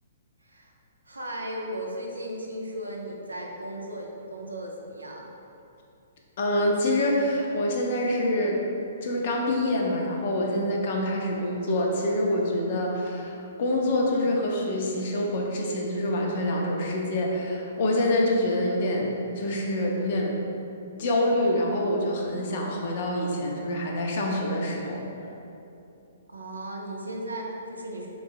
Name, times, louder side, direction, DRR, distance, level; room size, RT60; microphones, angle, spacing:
voice 1, 0.4-0.7 1.1-5.3 26.3-28.1, right 1 dB, 85° right, -1 dB, 0.5 m, -36 dB
voice 2, 6.4-20.4 21.0-25.1, left 1 dB, 50° left, -1 dB, 0.6 m, -26 dB
3.6 x 3.0 x 2.6 m, 2.7 s
figure-of-eight pair, 120°, 0 cm